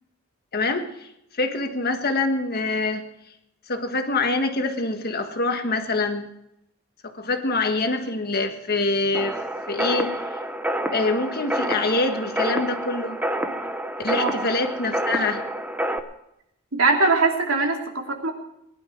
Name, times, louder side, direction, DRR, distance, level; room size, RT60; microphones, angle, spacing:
voice 1, 0.5-1.1 1.3-3.1 3.7-6.2 7.1-9.4 9.7-10.2 10.9-13.2 14.0-15.4, left 3 dB, 50° left, 6 dB, 1.5 m, -25 dB
sound 1, 9.1-16.0, right 1 dB, 10° right, 0.8 m, -28 dB
voice 2, 16.7-18.3, right 3 dB, 75° right, 1 dB, 2.8 m, -21 dB
19.5 x 11.5 x 4.7 m, 0.80 s
head